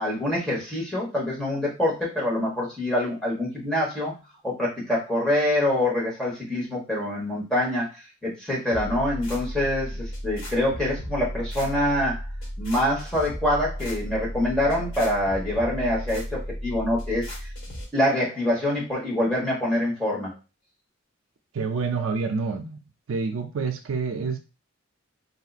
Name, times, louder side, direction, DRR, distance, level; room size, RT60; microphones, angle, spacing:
voice 1, 0.0-4.2 4.4-7.9 8.2-12.2 12.6-17.3 17.9-20.3, left 1 dB, 5° left, 1.3 m, -25 dB
Bear Clap Loop, 8.7-17.8, equal, 70° left, 1.6 m, -34 dB
voice 2, 21.5-22.8 23.1-24.4, right 4 dB, 70° right, 0.4 m, -27 dB
3.9 x 2.7 x 2.4 m
head